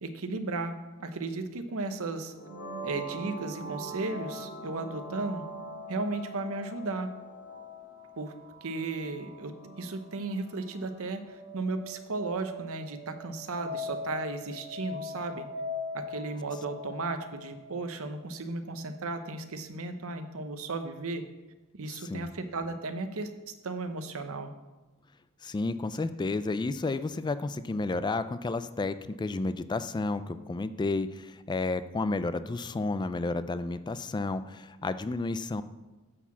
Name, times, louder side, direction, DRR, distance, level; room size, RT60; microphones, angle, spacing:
voice 1, 0.0-2.3 2.8-5.4 5.9-7.1 8.2-8.3 8.6-15.5 15.9-21.2 21.8-23.3 23.6-24.5, right 3 dB, 70° right, 8 dB, 0.9 m, -35 dB
sound 1, 2.3-18.0, left 1 dB, 65° left, 2.7 m, -41 dB
voice 2, 21.9-22.3 25.4-35.6, left 3 dB, 20° left, 13 dB, 0.3 m, -31 dB
9.9 x 4.8 x 7.1 m, 1.1 s
head